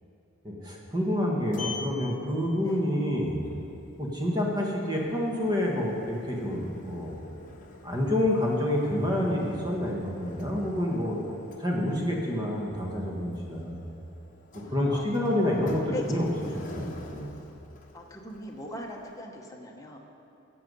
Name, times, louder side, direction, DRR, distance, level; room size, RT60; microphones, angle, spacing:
voice 1, 0.4-3.4 4.0-7.2 7.8-11.2 11.6-13.9 14.5-16.3 16.5-17.3, left 1 dB, 20° right, -2 dB, 1.5 m, -28 dB
Sliding door, 0.9-19.2, left 3 dB, 40° left, 1.0 m, -48 dB
voice 2, 14.5-15.4 15.8-16.2 17.9-20.0, left 1 dB, 15° left, 0 dB, 1.0 m, -40 dB
14.5 x 8.0 x 5.4 m, 2.8 s
head